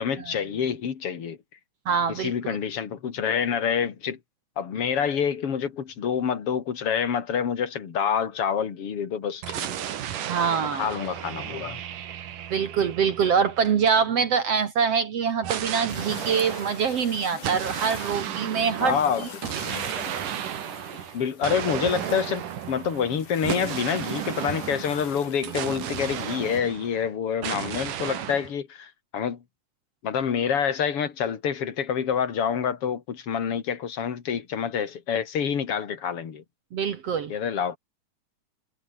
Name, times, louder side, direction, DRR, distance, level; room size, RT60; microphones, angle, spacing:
voice 1, 0.0-1.4 2.1-4.2 4.6-9.9 10.7-11.8 18.8-19.3 21.1-29.4 30.0-36.4 37.3-37.8, left 7 dB, 50° left, 3.0 m, -27 dB
voice 2, 1.9-2.6 10.3-10.9 12.5-19.3 36.7-37.3, right 6 dB, 55° right, 2.4 m, -24 dB
sound 1, 9.4-14.1 15.4-27.1 27.4-28.5, right 10 dB, 85° right, 3.4 m, -34 dB
sound 2, 15.9-26.6, left 6 dB, 70° left, 5.7 m, -43 dB
omnidirectional pair, 3.6 m